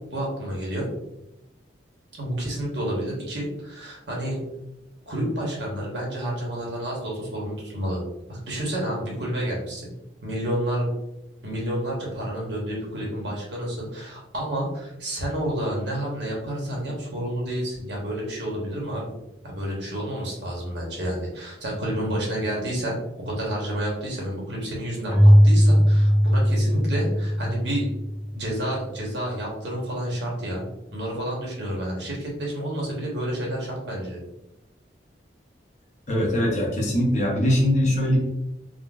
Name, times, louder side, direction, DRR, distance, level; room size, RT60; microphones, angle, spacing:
voice 1, 0.1-0.9 2.2-4.4 5.1-8.0 8.3-9.9 10.2-10.9 11.4-19.1 19.4-23.0 23.2-27.9 28.3-30.7 30.9-34.2, right 1 dB, 65° right, -3 dB, 1.0 m, -29 dB
Keyboard (musical), 25.1-28.6, equal, 10° right, 0.8 m, -18 dB
voice 2, 36.1-38.2, equal, 40° left, -2 dB, 0.7 m, -21 dB
3.7 x 2.2 x 2.3 m, 0.89 s
head